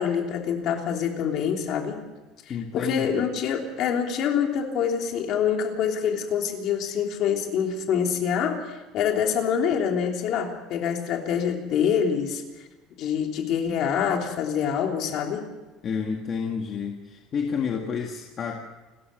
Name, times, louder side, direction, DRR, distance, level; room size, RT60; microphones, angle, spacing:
voice 1, 0.0-2.0 2.5-12.4 13.0-15.5, left 7 dB, 45° left, 3 dB, 3.2 m, -26 dB
voice 2, 2.5-3.1 15.8-16.9 17.3-18.6, left 6 dB, 30° left, 2 dB, 1.8 m, -29 dB
29.0 x 14.0 x 6.8 m, 1.2 s
cardioid pair, 175°, 0 cm